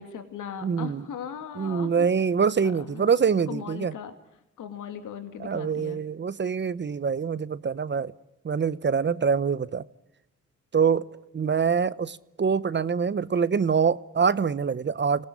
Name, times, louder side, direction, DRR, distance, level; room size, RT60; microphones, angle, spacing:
voice 1, 0.0-2.1 2.6-3.1 3.5-4.1 4.6-6.0, left 7 dB, 75° left, 2.5 m, -38 dB
voice 2, 0.6-1.0 1.6-3.9 5.4-8.1 8.4-9.8 10.7-11.1 11.3-15.3, right 6 dB, 35° right, 0.9 m, -25 dB
27.0 x 18.5 x 9.8 m
cardioid pair, 75°, 31 cm